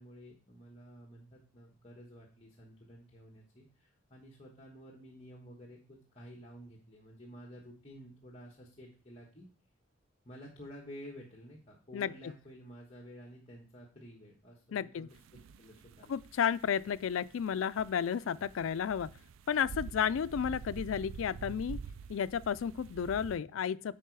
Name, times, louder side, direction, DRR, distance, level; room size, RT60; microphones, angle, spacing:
voice 1, 0.0-9.4 10.2-16.2, equal, 30° left, 1.4 m, -52 dB
voice 2, 14.7-15.1 16.1-19.1 19.5-21.8 22.1-24.0, left 8 dB, 85° left, 0.4 m, -32 dB
sound 1, 15.1-23.4, right 5 dB, 85° right, 0.3 m, -47 dB
9.2 x 4.9 x 4.7 m
head